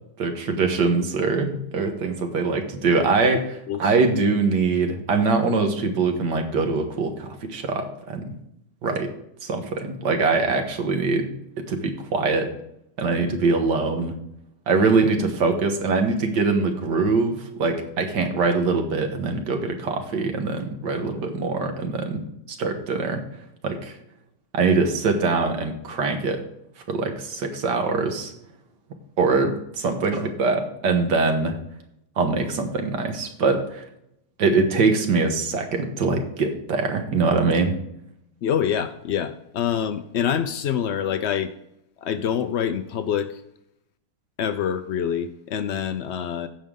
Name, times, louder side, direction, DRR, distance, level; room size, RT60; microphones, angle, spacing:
voice 1, 0.2-3.4 3.8-8.3 8.8-9.1 9.4-12.5 13.0-14.2 14.7-22.2 22.5-23.2 23.6-24.0 24.5-26.4 26.9-28.3 29.2-31.6 32.2-33.9 34.4-37.8, right 4 dB, 90° right, 5 dB, 1.8 m, -23 dB
voice 2, 38.4-41.5 42.0-43.4 44.4-46.5, left 8 dB, 90° left, 10 dB, 0.6 m, -26 dB
15.5 x 5.3 x 3.8 m, 0.79 s
omnidirectional pair, 1.8 m